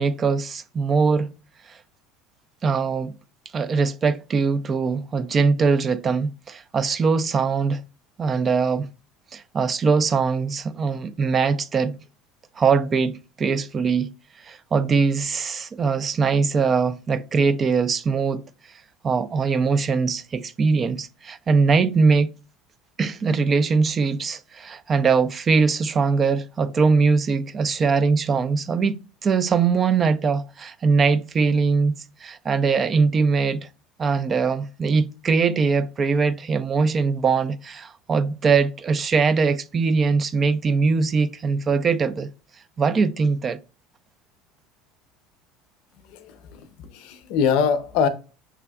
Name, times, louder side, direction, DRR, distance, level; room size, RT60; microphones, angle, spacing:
voice 1, 0.0-1.3 1.7-1.8 2.6-3.2 3.5-7.8 8.2-8.9 9.3-12.0 12.6-14.1 14.4-18.4 19.0-22.3 23.0-31.9 32.2-33.6 34.0-42.3 42.8-43.6, right 5 dB, 35° right, 0.3 m, -21 dB
voice 2, 46.0-48.1, left 7 dB, 70° left, 0.5 m, -24 dB
5.8 x 3.4 x 2.3 m
supercardioid pair, 90°, 0 cm